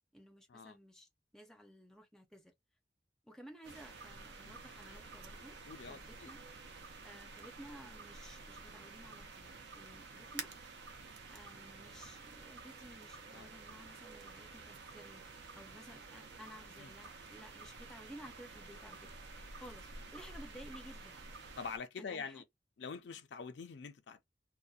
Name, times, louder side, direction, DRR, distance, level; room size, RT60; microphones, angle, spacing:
voice 1, 0.1-2.5 3.2-5.6 5.9-6.4 7.0-10.8 11.3-15.2 15.5-21.2 22.0-22.4, equal, 5° left, 0.5 m, -55 dB
sound 1, 3.6-21.8, right 4 dB, 75° right, 0.5 m, -51 dB
voice 2, 5.7-6.3 13.3-13.5 16.8-16.9 21.6-22.4 22.8-24.2, left 5 dB, 80° left, 0.4 m, -45 dB
2.5 x 2.1 x 2.3 m
head